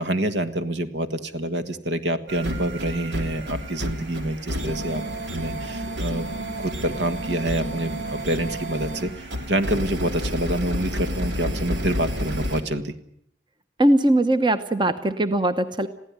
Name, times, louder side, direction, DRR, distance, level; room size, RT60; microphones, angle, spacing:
voice 1, 0.0-5.0 5.3-6.3 6.6-12.9, right 1 dB, 75° right, 9 dB, 1.5 m, -27 dB
sound 1, 2.3-12.6, equal, 90° right, 3.1 m, -30 dB
voice 2, 13.8-15.9, right 1 dB, 25° right, 10 dB, 0.9 m, -20 dB
22.0 x 15.5 x 9.4 m, 0.72 s
head